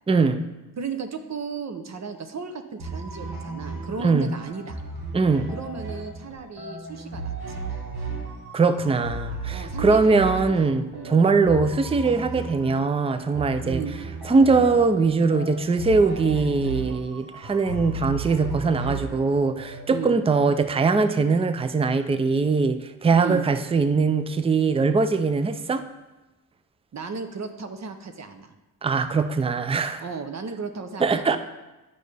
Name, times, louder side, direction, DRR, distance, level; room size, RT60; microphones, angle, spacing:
voice 1, 0.1-0.4 4.0-4.3 5.1-5.5 8.5-13.8 14.3-25.9 28.8-30.0 31.0-31.4, right 4 dB, 15° right, 10 dB, 0.4 m, -21 dB
voice 2, 0.8-4.8 5.5-7.6 9.5-11.2 13.6-14.0 19.9-20.2 23.1-23.5 26.9-28.5 30.0-31.4, right 5 dB, 45° right, 7 dB, 0.7 m, -35 dB
sound 1, 2.8-20.1, right 3 dB, 85° right, 1.4 m, -35 dB
8.6 x 5.4 x 3.4 m, 1.1 s
cardioid pair, 65°, 36 cm